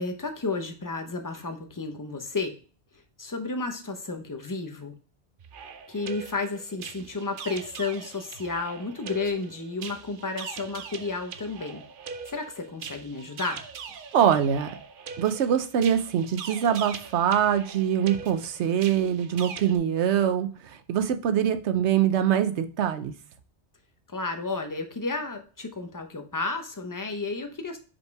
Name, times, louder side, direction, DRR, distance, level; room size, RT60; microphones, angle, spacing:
voice 1, 0.0-2.5 3.2-4.9 5.9-11.8 12.3-13.6 24.1-27.8, left 3 dB, 20° left, 6 dB, 0.7 m, -32 dB
sound 1, 5.4-19.8, right 6 dB, 55° right, 0.8 m, -42 dB
voice 2, 14.1-14.7 15.2-23.1, right 9 dB, 85° right, 9 dB, 1.0 m, -24 dB
5.4 x 4.3 x 4.7 m, 0.37 s
omnidirectional pair, 1.1 m